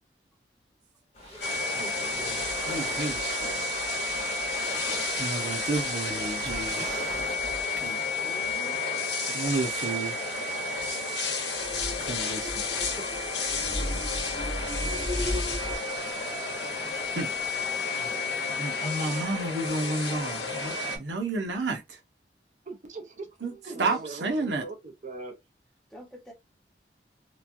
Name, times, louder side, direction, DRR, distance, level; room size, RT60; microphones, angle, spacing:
sound 1, 1.1-7.4, left 1 dB, 40° left, 0.9 m, -43 dB
sound 2, 1.4-21.0, left 3 dB, 80° left, 1.0 m, -31 dB
sound 3, 2.2-4.5 5.1-5.3 5.7-5.8 6.1-7.8 8.4-8.5 9.4-9.5 11.6-15.8, left 1 dB, 25° right, 1.0 m, -37 dB
voice 1, 2.7-3.6 3.9-4.5 5.2-7.0 7.8-8.0 9.3-10.2 12.0-12.6 17.1-22.0 23.4-23.5 23.8-24.6, right 2 dB, 90° right, 0.8 m, -32 dB
voice 2, 8.2-8.9 23.7-23.8 25.9-26.3, equal, 5° left, 0.8 m, -45 dB
voice 3, 22.7-23.1 23.5-25.4, right 3 dB, 45° right, 0.7 m, -40 dB
3.1 x 2.3 x 2.5 m
head